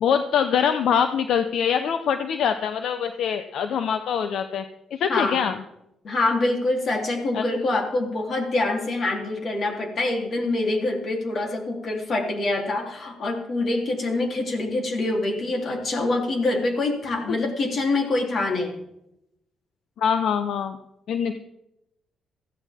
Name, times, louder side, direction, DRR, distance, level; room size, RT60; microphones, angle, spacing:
voice 1, 0.0-4.6 4.9-5.6 7.3-7.4 20.0-20.8 21.1-21.4, left 7 dB, 70° left, 9 dB, 0.8 m, -24 dB
voice 2, 5.1-5.4 6.0-18.8, left 2 dB, 50° left, 1 dB, 3.4 m, -25 dB
15.5 x 15.5 x 3.6 m, 0.85 s
cardioid pair, 90°, 0 cm